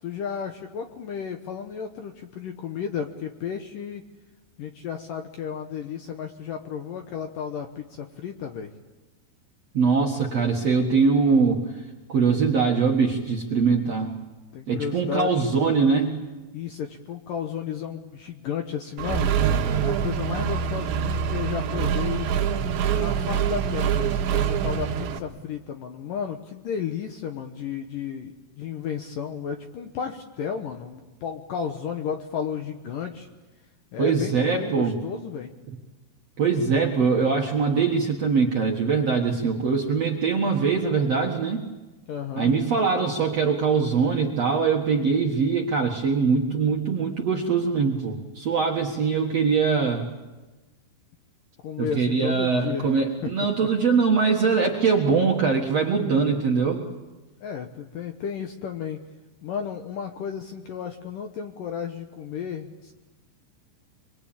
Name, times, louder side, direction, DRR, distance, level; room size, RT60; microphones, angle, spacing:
voice 1, 0.0-4.0 4.6-8.7 14.5-15.4 16.5-19.3 19.8-22.3 22.9-33.3 33.9-35.5 42.1-42.5 51.6-52.9 53.2-53.3 57.4-59.0 59.4-62.9, left 7 dB, 70° left, 5 dB, 2.2 m, -33 dB
voice 2, 9.7-11.6 12.1-14.1 14.7-16.2 34.0-35.0 36.4-41.6 42.4-50.1 51.8-56.8, right 5 dB, 55° right, 0 dB, 1.9 m, -22 dB
Accelerating revving vroom, 19.0-25.2, right 8 dB, 90° right, 4.0 m, -25 dB
25.0 x 23.5 x 8.7 m, 1.2 s
omnidirectional pair, 5.1 m